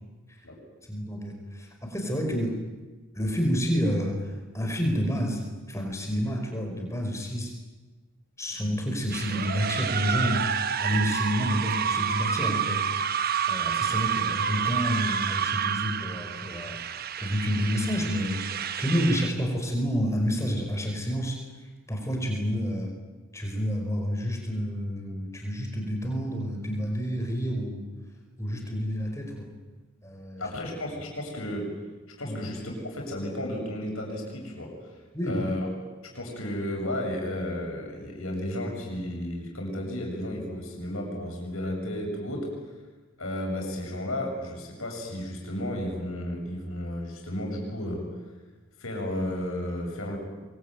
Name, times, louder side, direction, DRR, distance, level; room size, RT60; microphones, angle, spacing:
voice 1, 0.9-2.6 3.1-7.5 8.4-16.8 17.2-18.4 18.8-21.4 21.9-22.9 23.3-27.9 28.4-29.5 30.0-30.5 32.2-32.4 35.1-35.5, equal, 15° left, 2 dB, 5.2 m, -29 dB
sound 1, 9.1-19.3, right 7 dB, 45° right, 0.9 m, -29 dB
voice 2, 30.4-31.7 32.2-34.9 35.2-35.7 36.1-42.5 43.2-48.0 48.8-50.2, left 1 dB, 75° left, 0 dB, 7.4 m, -33 dB
24.0 x 23.0 x 9.4 m, 1.3 s
head